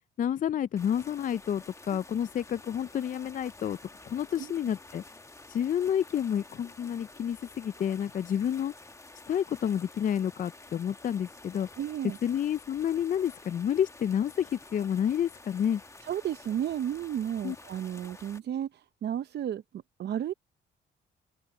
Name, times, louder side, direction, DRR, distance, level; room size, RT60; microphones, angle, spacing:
voice 1, 0.2-3.8 4.1-5.0 5.5-8.7 9.3-11.7 12.2-15.8 17.4-17.6, left 9 dB, 40° left, 0.4 m, -29 dB
sound 1, 0.8-18.4, left 2 dB, 15° left, 1.2 m, -50 dB
voice 2, 11.8-12.2 16.0-19.6 20.0-20.3, right 10 dB, 60° right, 0.7 m, -33 dB
open air
cardioid pair, 90°, 20 cm